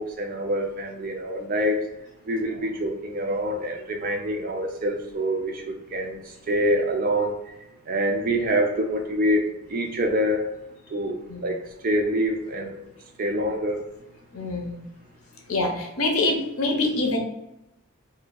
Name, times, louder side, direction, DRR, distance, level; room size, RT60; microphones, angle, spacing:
voice 1, 0.0-1.9 2.2-7.5 7.9-10.5 10.9-12.7 13.2-13.8, equal, 40° right, 3 dB, 0.5 m, -26 dB
voice 2, 14.3-14.8 15.5-17.2, left 2 dB, 85° left, 2 dB, 0.7 m, -25 dB
3.3 x 2.7 x 3.9 m, 0.89 s
head